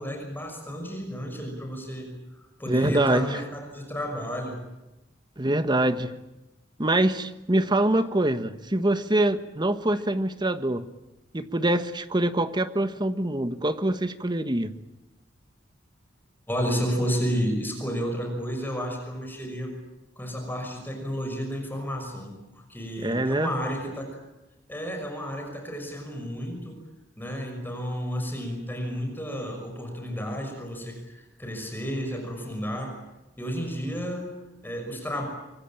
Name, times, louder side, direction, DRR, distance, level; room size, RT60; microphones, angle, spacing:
voice 1, 0.0-2.2 2.6-4.6 5.4-5.5 16.5-19.7 20.2-24.2 24.7-26.8 27.2-33.0 33.4-35.3, equal, 10° left, 6.0 m, -32 dB
voice 2, 2.7-3.4 5.4-6.1 6.8-10.8 11.3-14.7 23.0-23.5, right 1 dB, 25° right, 1.3 m, -24 dB
25.5 x 24.0 x 8.8 m
head